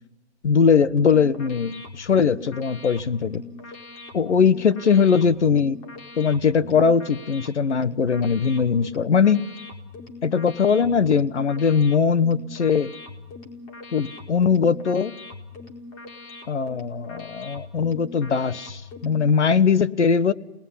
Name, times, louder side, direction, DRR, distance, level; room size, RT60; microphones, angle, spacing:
voice 1, 0.4-3.4 4.1-5.8 6.2-9.5 10.2-12.9 13.9-15.2 16.5-20.3, left 6 dB, 80° left, 15 dB, 1.4 m, -20 dB
sound 1, 0.8-19.3, left 3 dB, 30° left, 4.3 m, -42 dB
29.0 x 19.5 x 9.9 m, 0.99 s
hypercardioid pair, 145°, 34 cm